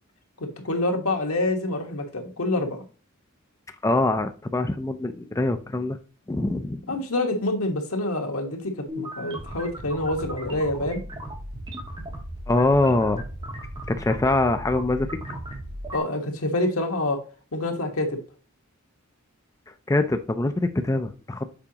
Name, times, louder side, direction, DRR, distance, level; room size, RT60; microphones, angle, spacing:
voice 1, 0.4-2.8 6.9-11.0 15.9-17.2 17.5-18.2, left 2 dB, 85° left, 3 dB, 1.4 m, -27 dB
voice 2, 3.8-6.0 6.3-7.0 12.5-13.2 13.9-15.2 19.9-21.4, left 2 dB, 15° left, 8 dB, 0.4 m, -23 dB
sound 1, 8.9-16.0, right 1 dB, 20° right, 1.5 m, -36 dB
6.9 x 4.8 x 2.8 m, 0.36 s
head